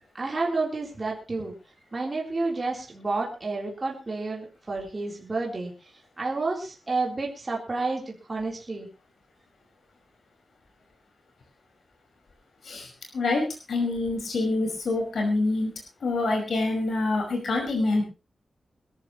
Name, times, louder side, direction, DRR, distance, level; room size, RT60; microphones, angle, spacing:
voice 1, 0.1-1.5 1.9-5.7 6.2-8.9, right 3 dB, 25° right, -2 dB, 3.8 m, -30 dB
voice 2, 13.1-15.7 16.0-18.0, left 2 dB, 65° left, 1 dB, 5.5 m, -26 dB
22.5 x 13.5 x 3.1 m, 0.31 s
wide cardioid pair, 170°, 0 cm